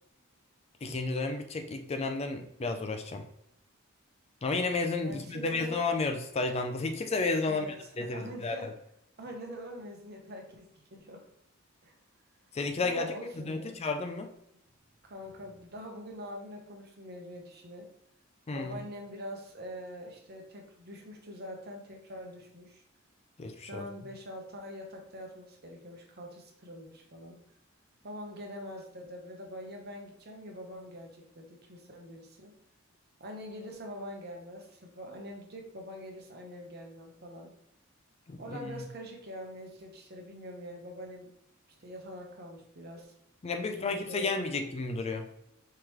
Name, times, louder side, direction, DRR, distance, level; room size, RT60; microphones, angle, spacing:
voice 1, 0.8-3.2 4.4-7.7 8.0-8.7 12.5-14.3 18.5-18.8 23.4-23.8 38.3-38.8 43.4-45.3, left 3 dB, 30° left, 6 dB, 0.4 m, -32 dB
voice 2, 5.0-5.8 7.4-8.7 9.2-11.2 11.8-11.9 12.8-13.8 15.0-17.9 18.5-22.8 23.6-27.4 28.0-32.6 33.2-37.5 38.4-41.3 41.7-43.1 43.7-44.6, equal, 50° right, 1 dB, 1.0 m, -44 dB
4.6 x 3.7 x 3.0 m, 0.78 s
head